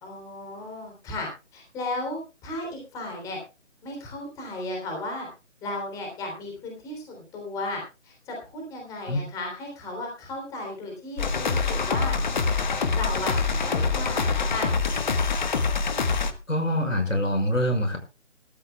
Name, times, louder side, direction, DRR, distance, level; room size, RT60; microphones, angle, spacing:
voice 1, 0.0-3.4 3.8-5.3 5.6-12.1 12.9-14.7, left 2 dB, 10° left, 1 dB, 3.3 m, -35 dB
sound 1, 11.2-16.3, left 4 dB, 40° left, 1.3 m, -25 dB
voice 2, 16.5-18.0, equal, 85° left, 6 dB, 5.8 m, -24 dB
21.0 x 13.5 x 2.3 m, 0.30 s
figure-of-eight pair, 155°, 37 cm